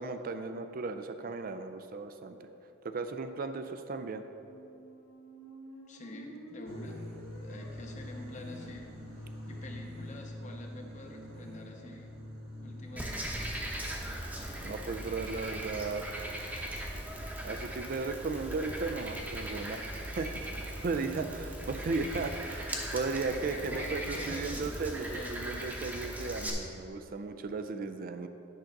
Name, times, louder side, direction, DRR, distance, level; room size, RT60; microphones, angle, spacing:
voice 1, 0.0-2.4 2.8-4.2 14.6-16.0 17.4-19.8 20.2-20.5 20.8-28.3, right 3 dB, 45° right, 9 dB, 0.4 m, -35 dB
sound 1, 4.3-10.2, equal, 85° left, 0.9 m, -51 dB
voice 2, 5.9-7.0 7.4-12.1 12.6-13.4 21.0-21.3 23.3-25.3, left 1 dB, 35° left, 2 dB, 0.8 m, -47 dB
sound 2, 6.6-17.6, left 1 dB, 75° right, 1.2 m, -46 dB
Frog, 13.0-26.5, right 1 dB, 10° right, 0.9 m, -39 dB
10.0 x 3.9 x 5.9 m, 2.8 s
head